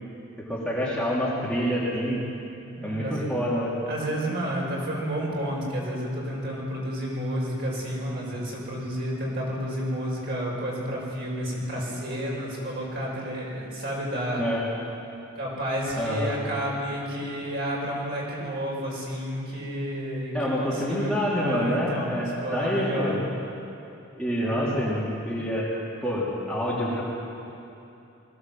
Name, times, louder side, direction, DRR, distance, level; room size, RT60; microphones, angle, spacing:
voice 1, 0.4-2.2 2.8-3.7 14.4-14.6 16.0-16.3 20.3-23.2 24.2-25.7 26.0-27.0, equal, 5° left, -7 dB, 3.2 m, -27 dB
voice 2, 2.8-3.3 3.9-14.4 15.4-23.2 24.4-24.7, equal, 50° right, -3 dB, 5.5 m, -31 dB
21.5 x 16.0 x 7.7 m, 2.8 s
head